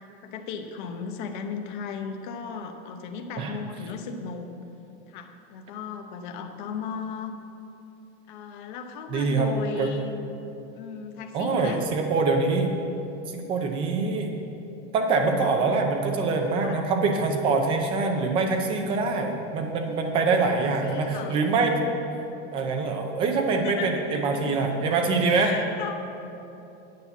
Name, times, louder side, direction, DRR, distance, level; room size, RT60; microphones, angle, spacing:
voice 1, 0.2-4.6 5.1-7.3 8.3-10.1 10.7-11.8 16.6-16.8 20.8-21.4 23.6-24.7 25.3-25.9, left 6 dB, 45° left, 6 dB, 0.9 m, -36 dB
voice 2, 9.1-9.5 9.8-9.9 11.3-12.7 13.3-14.4 14.9-21.8 22.5-25.5, right 4 dB, 15° right, 3 dB, 0.5 m, -24 dB
9.5 x 5.6 x 8.1 m, 2.8 s
supercardioid pair, 175°, 35 cm